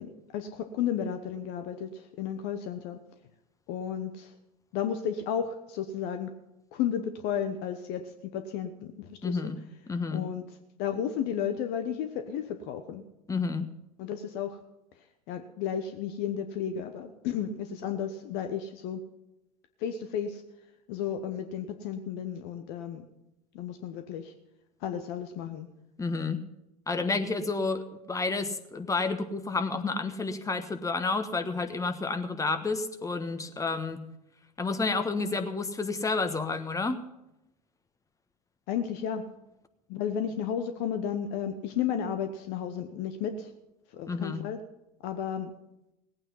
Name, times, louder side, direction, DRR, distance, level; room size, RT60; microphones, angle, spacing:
voice 1, 0.0-3.0 3.7-4.3 4.7-6.3 6.7-9.5 10.1-10.4 10.8-13.0 14.0-14.6 15.3-19.0 19.8-20.4 20.9-23.1 23.5-24.3 24.8-25.7 38.7-39.3 39.9-43.5 43.9-44.6 45.0-45.5, left 8 dB, 55° left, 8 dB, 1.0 m, -33 dB
voice 2, 9.2-9.6 9.9-10.2 13.3-13.6 26.0-26.4 26.9-34.1 34.6-37.0 44.1-44.4, left 3 dB, 15° left, 9 dB, 1.3 m, -30 dB
17.5 x 8.9 x 5.6 m, 0.91 s
hypercardioid pair, 80°, 20 cm